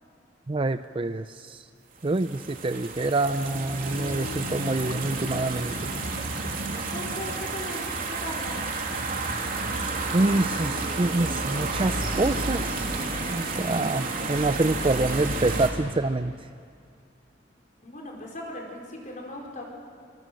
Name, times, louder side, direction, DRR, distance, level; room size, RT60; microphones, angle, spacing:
voice 1, 0.5-1.6 2.0-5.9 10.1-16.4, right 2 dB, 30° right, 10 dB, 0.5 m, -26 dB
sound 1, 2.1-15.7, right 3 dB, 50° right, 3.2 m, -31 dB
sound 2, 3.5-7.8, left 4 dB, 70° left, 0.9 m, -42 dB
voice 2, 6.9-8.6 17.8-19.6, left 1 dB, 45° left, 0 dB, 5.1 m, -38 dB
26.0 x 25.5 x 7.7 m, 2.4 s
head